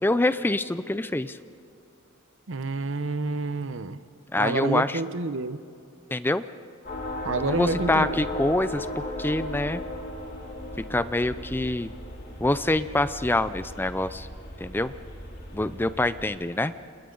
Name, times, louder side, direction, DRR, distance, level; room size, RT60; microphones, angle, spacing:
voice 1, 0.0-1.4 4.3-5.0 6.1-6.4 7.5-8.9 9.2-9.8 10.9-11.9 12.4-14.3 14.6-14.9 15.5-16.7, left 2 dB, 10° left, 13 dB, 0.4 m, -25 dB
voice 2, 2.5-4.0 4.3-5.6 7.2-8.2, right 3 dB, 65° right, 13 dB, 0.8 m, -29 dB
sound 1, 6.8-16.3, left 1 dB, 55° left, 4.1 m, -36 dB
29.5 x 28.0 x 3.9 m, 2.5 s
head